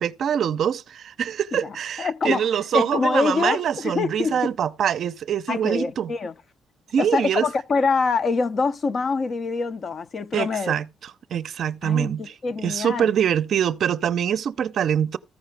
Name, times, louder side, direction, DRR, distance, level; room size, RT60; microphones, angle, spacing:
voice 1, 0.0-6.1 6.9-7.5 10.3-12.2 12.6-15.2, right 9 dB, 65° right, 0.5 m, -24 dB
voice 2, 1.5-2.5 2.7-4.4 5.5-6.3 7.0-10.7 11.8-13.1, left 4 dB, 45° left, 0.6 m, -25 dB
14.5 x 4.9 x 3.3 m
cardioid pair, 90°, 0 cm